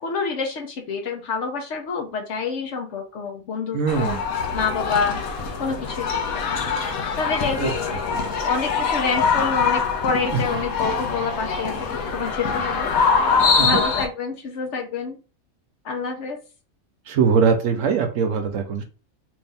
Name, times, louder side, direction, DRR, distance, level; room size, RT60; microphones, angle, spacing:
voice 1, 0.0-4.2 4.5-5.2 5.6-6.6 7.2-13.3 13.6-15.2 15.8-16.4, left 4 dB, 60° left, 3 dB, 1.0 m, -28 dB
voice 2, 3.7-4.2 7.6-7.7 8.1-8.2 13.6-13.7 17.1-18.8, right 6 dB, 70° right, 5 dB, 1.0 m, -21 dB
sound 1, 3.9-14.1, left 5 dB, 80° left, 1.2 m, -24 dB
3.2 x 2.7 x 3.4 m, 0.33 s
omnidirectional pair, 1.5 m